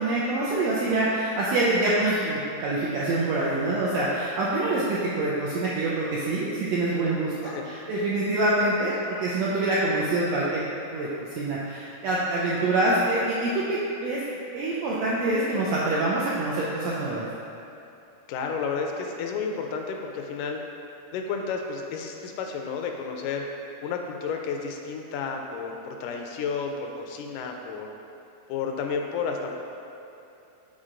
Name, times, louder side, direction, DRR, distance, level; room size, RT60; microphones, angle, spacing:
voice 1, 0.0-10.6 10.9-14.2 14.5-17.2, right 2 dB, 80° right, -6 dB, 1.5 m, -25 dB
voice 2, 18.3-20.6 21.1-23.4 23.8-27.9 28.5-29.5, left 5 dB, 85° left, 3 dB, 2.0 m, -31 dB
6.3 x 4.2 x 3.7 m, 2.8 s
omnidirectional pair, 3.7 m